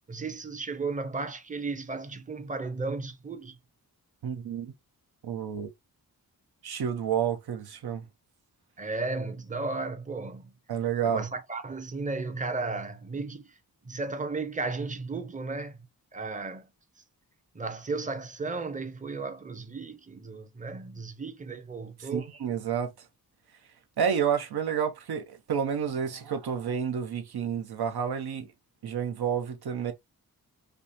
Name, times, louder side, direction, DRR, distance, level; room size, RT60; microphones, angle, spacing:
voice 1, 0.0-3.6 8.8-10.5 11.0-13.6 13.8-15.8 16.1-16.7 17.5-22.3, right 3 dB, 20° right, 0.6 m, -34 dB
voice 2, 4.2-4.7 5.2-5.7 6.6-8.0 10.7-11.2 22.0-22.9 24.0-28.5 28.8-29.9, right 7 dB, 85° right, 0.9 m, -30 dB
5.2 x 2.0 x 2.7 m
wide cardioid pair, 155°, 37 cm